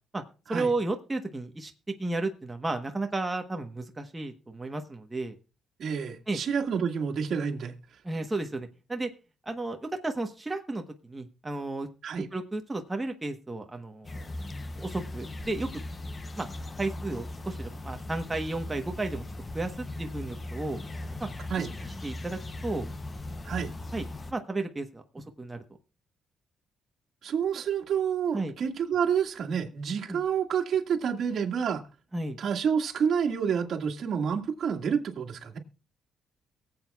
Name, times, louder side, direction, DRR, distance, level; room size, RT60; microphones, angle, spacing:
voice 1, 0.5-1.7 2.0-5.4 6.3-6.4 8.0-9.1 9.4-11.9 12.3-14.3 14.7-15.7 16.4-16.5 16.8-19.2 19.5-20.8 21.2-21.3 21.6-21.7 22.0-22.9 23.9-24.0 24.3-25.6 28.3-28.5 30.1-30.2 32.1-32.4, right 2 dB, 15° right, 1.1 m, -33 dB
voice 2, 5.8-7.7 12.0-12.3 21.5-21.7 23.4-23.7 27.2-31.8 32.4-35.6, right 7 dB, 60° right, 1.9 m, -28 dB
sound 1, 14.0-24.3, left 2 dB, 30° left, 0.7 m, -38 dB
23.0 x 8.0 x 2.4 m
cardioid pair, 90°, 0 cm